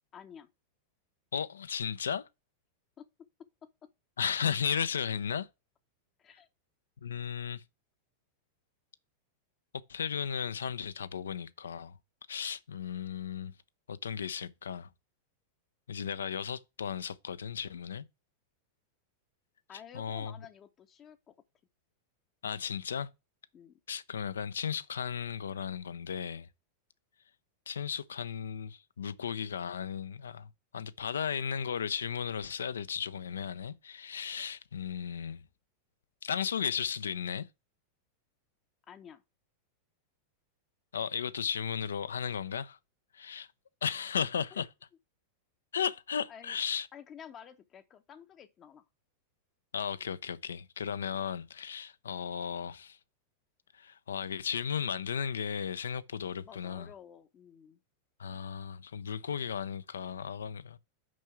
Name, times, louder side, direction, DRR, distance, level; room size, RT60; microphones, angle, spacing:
voice 1, 0.1-0.5 3.0-3.9 6.2-6.5 19.7-21.4 23.5-23.8 38.9-39.2 44.5-44.6 46.3-46.6 46.9-48.9 56.4-57.8, left 8 dB, 30° left, 0.8 m, -51 dB
voice 2, 1.3-2.3 4.2-5.5 7.0-7.6 9.9-11.9 12.3-13.5 13.9-14.9 15.9-18.0 19.9-20.3 22.4-23.1 23.9-26.5 27.7-35.4 36.2-37.5 40.9-42.8 43.1-43.5 43.8-44.7 45.7-46.9 49.7-53.0 53.8-56.9 58.2-60.8, left 7 dB, 70° left, 0.6 m, -35 dB
6.3 x 5.4 x 5.9 m
figure-of-eight pair, 90°, 0 cm